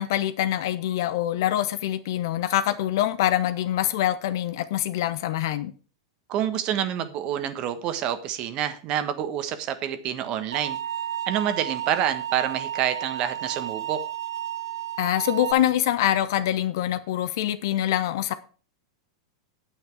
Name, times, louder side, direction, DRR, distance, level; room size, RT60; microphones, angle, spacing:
voice 1, 0.0-5.7 15.0-18.3, left 12 dB, 60° left, 1.0 m, -25 dB
voice 2, 6.3-10.8 11.3-14.0, right 10 dB, 40° right, 1.3 m, -27 dB
sound 1, 10.5-15.5, right 11 dB, 80° right, 1.3 m, -32 dB
9.0 x 8.9 x 4.7 m
hypercardioid pair, 100°, 2 cm